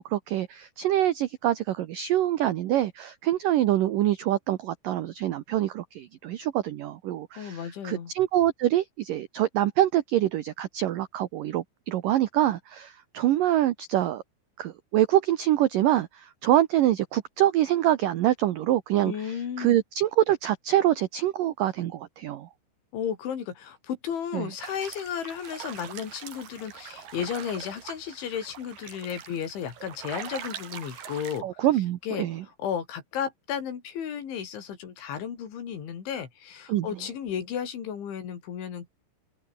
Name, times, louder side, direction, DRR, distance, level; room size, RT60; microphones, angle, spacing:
voice 1, 0.0-14.2 14.6-22.5 24.3-24.5 31.4-32.4 36.7-36.9, right 13 dB, 85° right, 1.9 m, -25 dB
voice 2, 7.4-8.1 19.0-19.8 22.9-31.7 32.0-38.9, left 8 dB, 75° left, 6.0 m, -34 dB
sound 1, 24.6-31.4, right 8 dB, 50° right, 3.8 m, -42 dB
open air
omnidirectional pair, 5.4 m